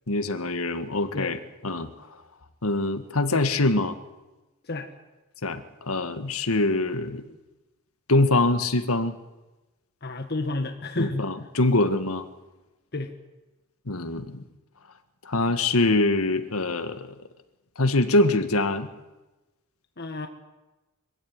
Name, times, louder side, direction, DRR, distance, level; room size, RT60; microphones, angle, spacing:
voice 1, 0.1-1.9 2.6-4.0 5.4-7.2 8.1-9.2 11.0-12.2 13.9-14.4 15.3-17.1 17.8-18.9, left 2 dB, 80° left, 10 dB, 1.8 m, -24 dB
voice 2, 10.0-11.3 12.9-13.1 20.0-20.3, left 2 dB, 50° left, 5 dB, 1.6 m, -30 dB
24.5 x 15.5 x 9.7 m, 1.1 s
head